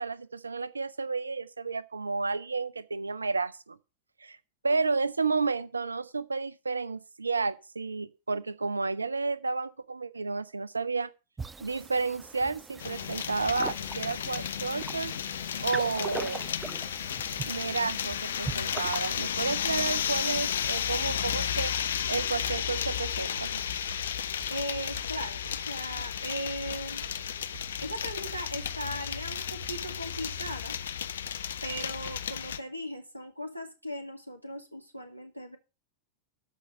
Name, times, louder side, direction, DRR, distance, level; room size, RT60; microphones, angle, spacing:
voice 1, 0.0-3.8 4.2-4.4 4.6-11.1 11.6-15.1 15.6-16.5 17.5-21.7 22.1-23.6, right 4 dB, 80° right, 0.7 m, -31 dB
sound 1, 11.4-19.3, right 4 dB, 15° right, 0.6 m, -41 dB
sound 2, 12.8-32.6, left 9 dB, 65° left, 0.8 m, -33 dB
sound 3, 22.8-31.0, right 2 dB, 50° right, 3.3 m, -50 dB
voice 2, 24.5-27.0 27.8-30.8 31.6-35.6, equal, 90° left, 2.2 m, -38 dB
13.0 x 5.5 x 6.4 m
figure-of-eight pair, 90°, 0 cm